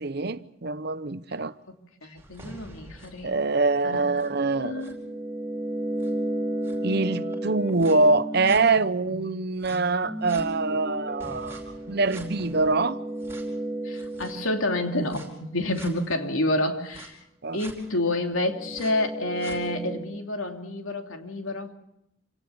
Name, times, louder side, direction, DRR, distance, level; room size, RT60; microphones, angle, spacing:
voice 1, 0.0-1.5 3.2-4.8 6.8-11.6 11.9-13.0 17.4-17.6, right 3 dB, 50° right, 0.8 m, -24 dB
voice 2, 2.0-3.3 3.8-5.0 13.8-17.2 17.5-21.7, left 1 dB, 75° left, 2.9 m, -29 dB
sound 1, 2.2-9.1 9.6-15.3 15.8-15.9 16.9-17.1 17.6-17.7 18.2-20.0, right 1 dB, 15° right, 4.8 m, -34 dB
27.5 x 18.5 x 7.0 m
head